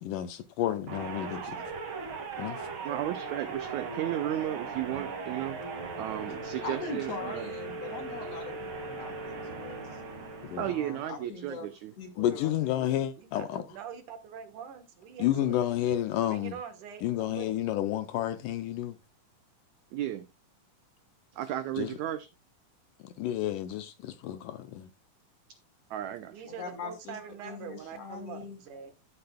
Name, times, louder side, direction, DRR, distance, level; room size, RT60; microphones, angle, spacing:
voice 1, 0.0-1.6 2.4-2.7 10.4-10.7 12.2-13.7 15.2-16.6 17.0-19.0 21.8-22.0 23.0-24.9, left 12 dB, 75° left, 2.0 m, -31 dB
sound 1, 0.9-11.2, right 4 dB, 40° right, 2.3 m, -39 dB
voice 2, 2.8-5.6 6.0-7.5 10.6-11.9 19.9-20.3 21.3-22.3 25.9-26.4, right 12 dB, 90° right, 1.6 m, -34 dB
voice 3, 6.6-10.0 10.6-11.7 12.0-12.9 26.4-28.6, left 4 dB, 50° left, 2.8 m, -42 dB
voice 4, 13.3-15.6 16.3-17.5 26.3-28.9, right 7 dB, 65° right, 2.5 m, -44 dB
14.5 x 6.9 x 2.2 m
omnidirectional pair, 4.1 m